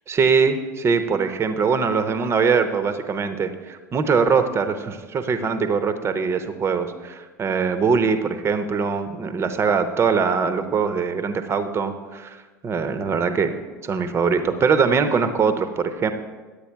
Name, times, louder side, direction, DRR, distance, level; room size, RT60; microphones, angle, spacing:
voice 1, 0.1-12.4 12.6-13.5 13.8-16.1, right 5 dB, 25° right, 10 dB, 0.8 m, -22 dB
10.5 x 8.4 x 4.6 m, 1.3 s
figure-of-eight pair, 75°, 10 cm